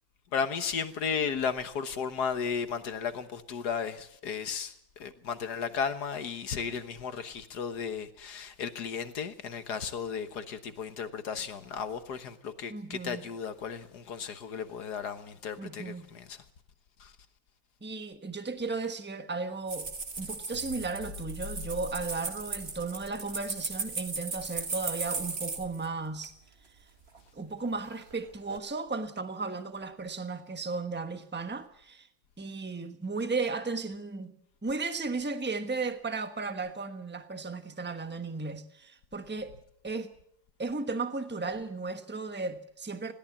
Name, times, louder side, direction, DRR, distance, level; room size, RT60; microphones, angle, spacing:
voice 1, 0.3-16.4 17.0-17.1, left 6 dB, 55° left, 1.6 m, -34 dB
voice 2, 12.7-13.2 15.6-16.1 17.8-19.9 20.2-26.3 27.3-32.1 32.4-34.3 34.6-39.5 39.8-40.1 40.6-43.1, right 3 dB, 10° right, 0.8 m, -35 dB
sound 1, 19.7-25.9 26.2-26.3 27.1-27.7 28.0-28.6, right 4 dB, 30° right, 1.8 m, -37 dB
sound 2, 20.5-25.0, left 3 dB, 70° left, 2.6 m, -46 dB
21.0 x 17.0 x 7.3 m
omnidirectional pair, 2.2 m